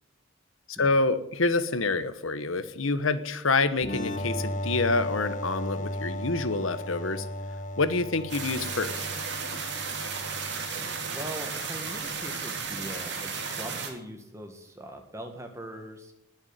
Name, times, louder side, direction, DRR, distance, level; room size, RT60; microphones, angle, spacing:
voice 1, 0.7-7.3 7.8-9.1, left 3 dB, 85° left, 12 dB, 1.3 m, -27 dB
sound 1, 3.8-11.3, left 1 dB, 35° left, 1.5 m, -35 dB
sound 2, 8.3-13.9, right 5 dB, 55° right, 3.0 m, -34 dB
voice 2, 10.6-16.1, right 1 dB, 15° right, 5 dB, 2.0 m, -41 dB
20.0 x 7.3 x 9.2 m, 0.82 s
head